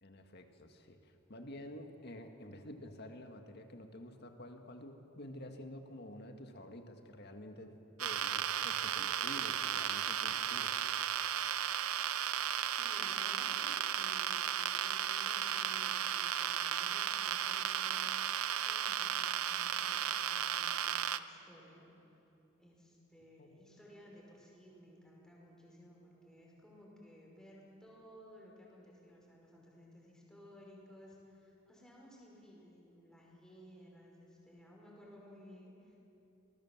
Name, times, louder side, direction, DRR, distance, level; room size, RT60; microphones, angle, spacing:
voice 1, 0.0-10.8 23.4-23.5, left 1 dB, 50° left, 5 dB, 1.9 m, -50 dB
sound 1, 8.0-21.2, right 10 dB, 90° right, 0.7 m, -35 dB
voice 2, 12.8-21.9 22.6-36.0, equal, 5° left, -3 dB, 5.2 m, -57 dB
26.0 x 20.0 x 7.5 m, 2.9 s
head